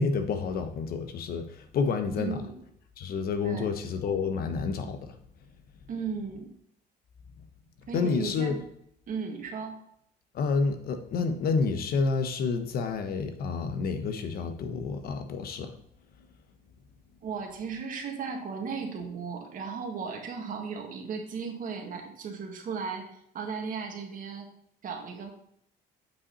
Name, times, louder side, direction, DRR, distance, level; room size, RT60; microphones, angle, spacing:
voice 1, 0.0-2.4 3.0-5.2 7.9-8.6 10.3-15.7, left 4 dB, 65° left, 7 dB, 1.2 m, -29 dB
voice 2, 2.2-2.6 3.4-3.8 5.9-6.5 7.9-8.6 9.1-9.8 17.2-24.5 24.8-25.3, right 5 dB, 55° right, 2 dB, 2.0 m, -36 dB
8.3 x 5.8 x 4.1 m, 0.70 s
cardioid pair, 110°, 17 cm